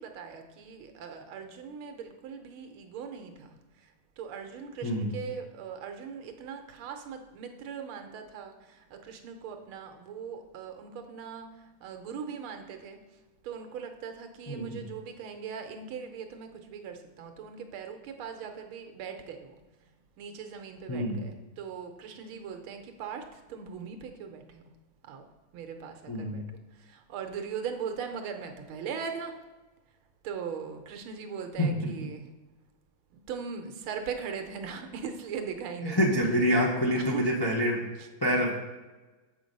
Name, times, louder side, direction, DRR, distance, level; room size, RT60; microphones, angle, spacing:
voice 1, 0.0-13.0 13.4-19.6 20.2-24.6 25.0-25.3 25.5-26.4 26.7-29.4 30.2-32.3 33.1-36.0 36.9-37.3 38.0-38.1 38.4-38.5, right 6 dB, 90° right, 5 dB, 1.7 m, -40 dB
voice 2, 14.5-14.8 20.9-21.2 26.1-26.4 31.6-31.8 35.8-37.9 38.2-38.5, equal, 35° left, -2 dB, 0.3 m, -26 dB
7.1 x 5.9 x 5.3 m, 1.2 s
omnidirectional pair, 2.2 m